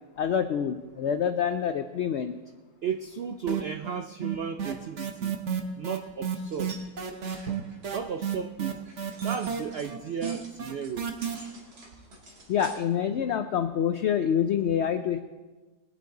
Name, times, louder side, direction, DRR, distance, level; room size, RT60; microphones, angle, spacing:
voice 1, 0.2-2.3 12.5-15.2, left 8 dB, 85° left, 9 dB, 0.6 m, -26 dB
voice 2, 2.8-5.4 5.8-6.8 7.9-8.7 9.2-11.1, right 6 dB, 85° right, 8 dB, 0.5 m, -34 dB
sound 1, 3.5-4.0 4.2-11.3, right 8 dB, 50° right, 1.3 m, -31 dB
sound 2, 6.4-12.8, right 2 dB, 70° right, 2.7 m, -49 dB
21.5 x 8.5 x 3.8 m, 1.3 s
omnidirectional pair, 1.7 m